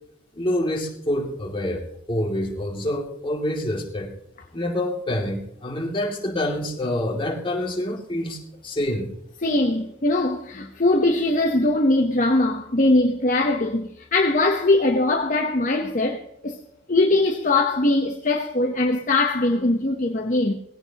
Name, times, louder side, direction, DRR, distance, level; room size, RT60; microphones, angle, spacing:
voice 1, 0.3-4.1 4.5-9.1, left 1 dB, 25° left, 2.7 m, -27 dB
voice 2, 9.4-16.6 16.9-20.6, left 2 dB, 45° left, 1.0 m, -21 dB
18.5 x 16.5 x 3.0 m
head